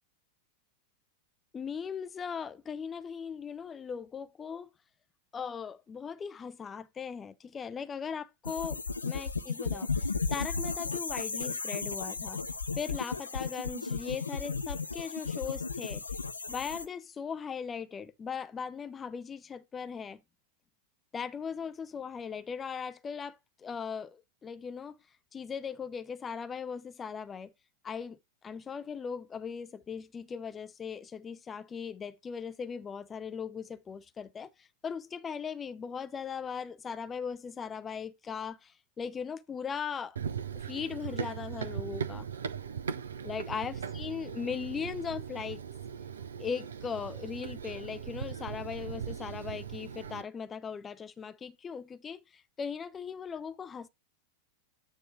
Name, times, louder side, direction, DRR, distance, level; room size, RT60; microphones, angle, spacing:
voice 1, 1.5-4.7 5.3-12.4 12.8-16.0 16.5-20.2 21.1-25.0 25.3-27.5 27.8-28.2 28.4-40.2 40.5-42.3 43.2-45.6 46.4-53.9, left 6 dB, 20° left, 0.5 m, -39 dB
sound 1, 8.4-16.9, left 4 dB, 75° left, 0.7 m, -34 dB
Run, 40.2-50.2, right 7 dB, 70° right, 0.7 m, -39 dB
9.3 x 3.1 x 5.1 m
figure-of-eight pair, 90°, 0 cm